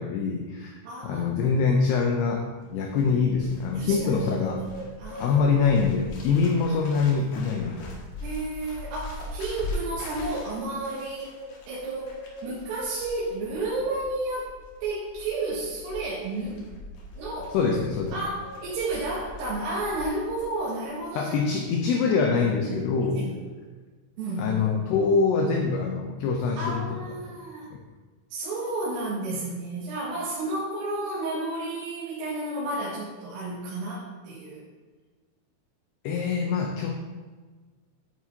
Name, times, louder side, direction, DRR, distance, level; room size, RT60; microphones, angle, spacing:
voice 1, 0.0-0.7 1.0-4.6 5.2-7.9 17.5-18.2 21.2-23.2 24.4-27.0 27.3-27.4 36.0-36.9, left 5 dB, 85° left, 2 dB, 2.3 m, -24 dB
voice 2, 0.8-1.3 3.8-4.2 4.6-4.7 5.0-5.4 7.5-7.6 8.2-11.3 11.7-12.2 12.4-16.7 17.2-17.6 18.1-21.3 22.6-22.9 23.1-23.4 24.2-24.6 26.6-27.7 28.3-34.6, right 2 dB, 90° right, -9 dB, 4.5 m, -32 dB
Bird, 2.6-20.5 20.7-21.0, left 1 dB, 60° left, 2.9 m, -40 dB
10.5 x 8.9 x 2.9 m, 1.4 s
omnidirectional pair, 5.7 m